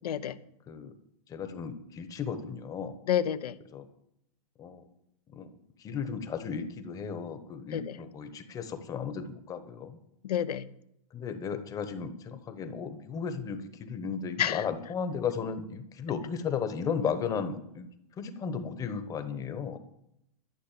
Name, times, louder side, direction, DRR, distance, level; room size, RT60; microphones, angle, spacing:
voice 1, 0.0-0.4 3.1-3.6 7.7-8.0 10.2-10.7 14.4-14.6, left 10 dB, 85° left, 12 dB, 0.9 m, -29 dB
voice 2, 1.3-3.0 3.7-3.9 4.6-4.8 5.3-5.5 5.8-10.0 11.1-17.9 18.2-19.8, left 6 dB, 20° left, 9 dB, 1.1 m, -35 dB
12.0 x 6.5 x 8.5 m, 0.77 s
hypercardioid pair, 155°, 19 cm